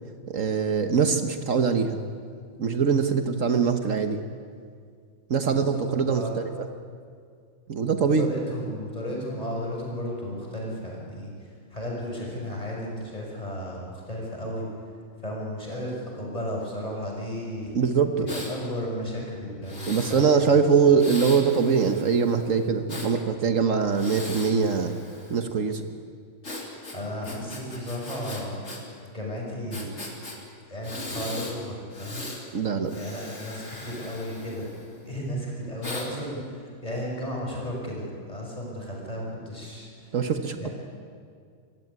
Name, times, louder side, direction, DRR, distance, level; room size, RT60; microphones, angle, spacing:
voice 1, 0.3-2.0 2.6-4.2 5.3-6.7 7.7-8.3 17.7-18.3 19.9-25.0 25.3-25.9 32.5-32.9 40.1-40.7, right 6 dB, 65° right, 7 dB, 1.5 m, -23 dB
voice 2, 5.5-6.3 8.0-11.3 11.7-14.6 15.2-17.8 18.3-20.6 26.9-28.6 29.1-29.9 30.7-32.2 32.9-34.7 35.0-39.9 40.6-40.7, equal, 25° left, -2 dB, 6.1 m, -34 dB
Breathing, 18.3-18.5 19.6-20.3 21.0-23.1 23.9-25.5 26.4-28.8 29.1-29.2 29.7-30.4 30.8-31.6 31.9-32.4 32.8-35.0 35.8-36.1, left 2 dB, 55° left, 3.5 m, -38 dB
25.5 x 16.0 x 9.7 m, 2.2 s
omnidirectional pair, 1.5 m